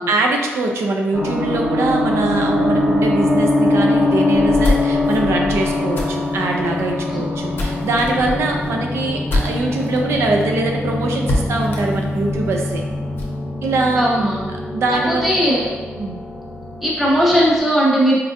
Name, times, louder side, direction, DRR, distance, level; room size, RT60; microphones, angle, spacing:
voice 1, 0.1-12.8 13.6-14.2 14.7-15.3 16.0-16.2, right 2 dB, 85° right, 2 dB, 0.4 m, -22 dB
sound 1, 1.1-17.6, left 2 dB, 20° left, 1.0 m, -22 dB
sound 2, 4.3-10.0 10.4-10.5 10.7-10.8 11.2-13.4, left 2 dB, 55° left, 0.6 m, -26 dB
voice 2, 14.0-14.4 15.1-15.6 16.8-18.1, equal, 5° right, -6 dB, 0.8 m, -17 dB
4.3 x 2.5 x 2.5 m, 1.4 s
wide cardioid pair, 155°, 4 cm